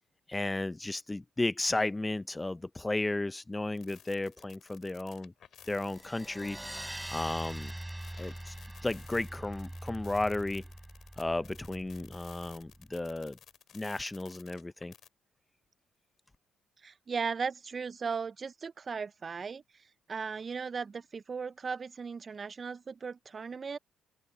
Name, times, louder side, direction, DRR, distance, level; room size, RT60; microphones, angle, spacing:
voice 1, 0.3-5.3 5.7-6.6 7.1-7.7 8.2-8.5 8.8-10.6 11.2-13.4 13.7-14.9, left 2 dB, 15° left, 0.6 m, -34 dB
sound 1, 3.8-15.1, left 9 dB, 65° left, 5.1 m, -56 dB
sound 2, 5.8-12.8, right 1 dB, 5° right, 6.3 m, -43 dB
voice 2, 16.8-19.6 20.1-23.8, right 5 dB, 40° right, 0.4 m, -37 dB
open air
cardioid pair, 90°, 0 cm